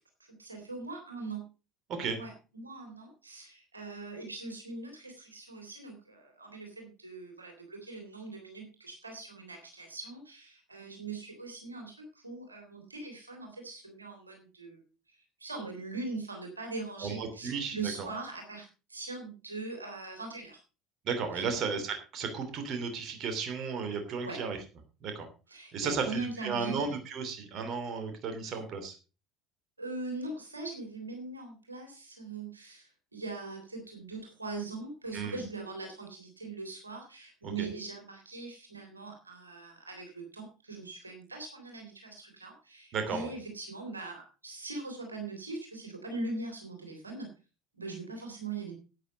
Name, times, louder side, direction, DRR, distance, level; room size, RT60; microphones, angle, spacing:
voice 1, 0.4-1.4 2.2-14.8 15.1-20.6 21.3-21.5 24.2-24.4 25.5-26.9 28.4-28.6 29.8-47.3 47.7-48.8, right 3 dB, 85° right, 3 dB, 3.4 m, -41 dB
voice 2, 1.9-2.2 17.0-18.1 21.0-24.6 25.0-25.3 25.7-29.0 35.1-35.4 37.4-37.7 42.9-43.3, right 5 dB, 45° right, 7 dB, 3.0 m, -34 dB
11.5 x 9.5 x 5.2 m, 0.33 s
figure-of-eight pair, 65°, 0 cm